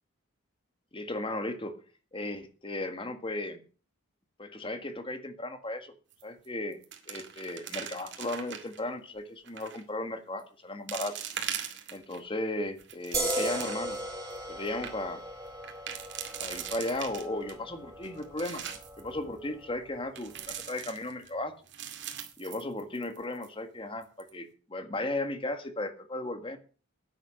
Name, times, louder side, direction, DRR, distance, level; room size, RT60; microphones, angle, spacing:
voice 1, 0.9-1.8 2.1-3.6 4.4-5.9 6.2-6.8 7.1-11.1 11.9-14.0 14.5-15.2 16.4-18.6 19.0-21.5 22.4-26.6, left 2 dB, 25° left, 8 dB, 1.6 m, -35 dB
sound 1, 6.1-6.5 6.7-8.8 9.5-9.8 10.4-10.5 10.9-12.2 12.7-14.0 14.4-14.5 14.7-14.9 15.6-17.5 18.0-19.0 20.2-21.3 21.7-23.2 23.4-23.5 24.0-24.3, right 9 dB, 60° right, 2.2 m, -40 dB
sound 2, 13.1-20.4, right 1 dB, 15° right, 6.8 m, -38 dB
10.5 x 10.0 x 6.4 m, 0.38 s
head